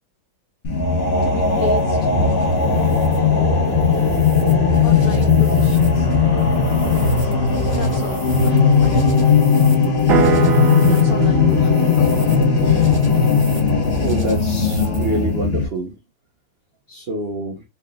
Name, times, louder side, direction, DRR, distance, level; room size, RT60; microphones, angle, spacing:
sound 1, 0.6-15.6, left 5 dB, 50° left, 0.8 m, -17 dB
voice 1, 1.2-2.1 4.8-6.1 7.2-7.4 7.7-9.0 10.8-13.1, left 8 dB, 80° left, 0.8 m, -34 dB
sound 2, 1.4-15.3, left 1 dB, 20° right, 1.0 m, -31 dB
sound 3, 10.1-14.2, right 7 dB, 65° right, 0.9 m, -25 dB
voice 2, 14.0-15.9 16.9-17.6, right 2 dB, 80° right, 0.5 m, -26 dB
4.1 x 3.4 x 2.3 m
omnidirectional pair, 2.2 m